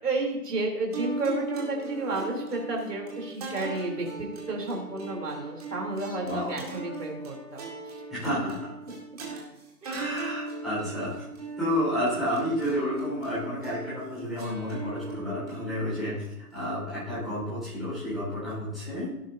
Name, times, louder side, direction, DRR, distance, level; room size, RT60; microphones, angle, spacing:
voice 1, 0.0-7.9 8.2-8.5 9.8-10.1, right 2 dB, 75° right, 0 dB, 3.5 m, -32 dB
sound 1, 0.9-17.4, right 3 dB, 25° right, 2.1 m, -39 dB
voice 2, 6.2-6.6 8.1-8.7 9.9-11.2 11.6-19.1, equal, ahead, -13 dB, 4.6 m, -31 dB
16.5 x 9.2 x 2.7 m, 0.86 s
hypercardioid pair, 175°, 47 cm